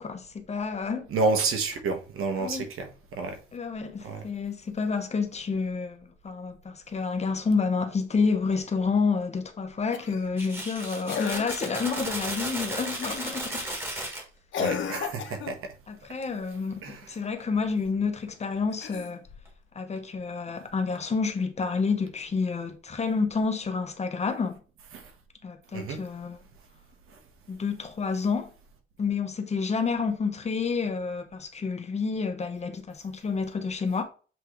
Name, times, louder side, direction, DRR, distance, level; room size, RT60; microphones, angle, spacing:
voice 1, 0.0-1.1 2.4-2.7 3.5-13.7 15.9-19.2 19.7-24.6 25.4-26.4 27.5-28.5 29.0-34.0, left 4 dB, 30° left, 0.9 m, -29 dB
voice 2, 1.1-3.4 4.0-4.2 14.6-15.7 16.8-17.0 24.9-25.1 25.7-26.0, right 3 dB, 80° right, 1.4 m, -29 dB
Cough, 9.9-10.3 11.1-11.8 13.0-13.3 14.5-15.6 18.7-19.5 20.9-21.0, left 7 dB, 65° left, 0.9 m, -34 dB
sound 1, 10.4-14.2 16.2-16.3 16.5-16.7 17.2-17.4 19.5-19.6 20.0-20.1, right 1 dB, 10° right, 1.6 m, -34 dB
7.7 x 3.2 x 3.8 m
cardioid pair, 145°, 21 cm